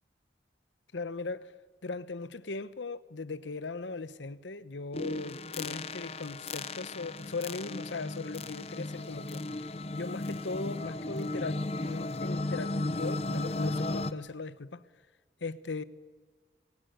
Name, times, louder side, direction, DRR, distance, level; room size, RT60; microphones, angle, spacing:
voice 1, 0.9-1.6 1.8-9.4 9.9-14.8 15.4-15.8, left 3 dB, 90° left, 0.9 m, -38 dB
sound 1, 4.9-14.1, left 2 dB, 35° left, 0.7 m, -35 dB
24.0 x 19.5 x 8.1 m
head